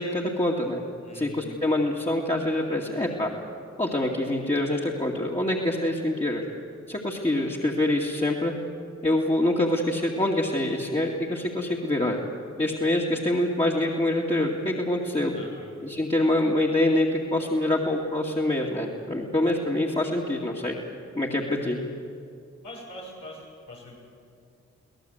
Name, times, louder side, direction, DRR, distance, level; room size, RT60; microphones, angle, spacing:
voice 1, 0.0-0.8 1.1-3.3 3.8-6.4 6.9-8.5 9.0-12.2 12.6-15.3 15.8-20.8 21.1-21.8, left 1 dB, 20° left, -3 dB, 2.5 m, -25 dB
voice 2, 1.0-1.6 15.3-15.7 21.4-21.8 22.6-23.9, left 1 dB, 90° left, -3 dB, 6.7 m, -43 dB
24.0 x 17.5 x 8.1 m, 2.4 s
cardioid pair, 45°, 29 cm